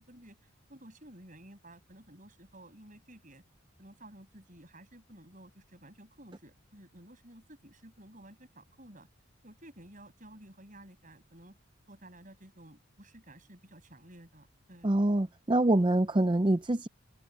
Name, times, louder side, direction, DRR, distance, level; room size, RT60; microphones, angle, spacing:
voice 1, 0.0-3.4 3.8-9.1 9.4-11.6 11.9-15.0, right 1 dB, 40° right, 8.0 m, -53 dB
voice 2, 14.8-16.9, right 1 dB, 25° right, 0.5 m, -25 dB
open air
head